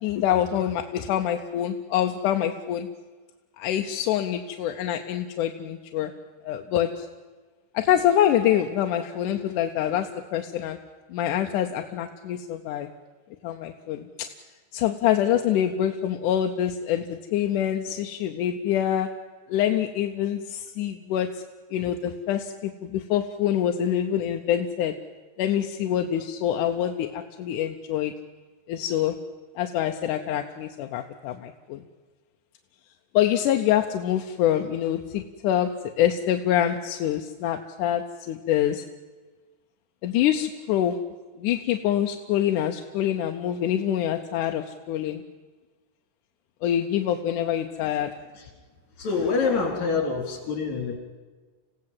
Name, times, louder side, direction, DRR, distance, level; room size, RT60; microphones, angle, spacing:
voice 1, 0.0-2.9 3.6-6.1 6.4-7.1 7.7-10.8 11.1-12.9 13.4-14.3 14.7-19.1 19.5-21.4 21.7-24.9 25.4-28.1 28.7-29.2 29.6-31.8 33.1-38.8 40.0-41.0 41.4-45.2 46.6-48.1, left 10 dB, 75° left, 5 dB, 2.2 m, -25 dB
voice 2, 49.0-51.0, left 4 dB, 55° left, 2 dB, 5.3 m, -26 dB
27.0 x 16.5 x 7.6 m, 1.3 s
omnidirectional pair, 4.0 m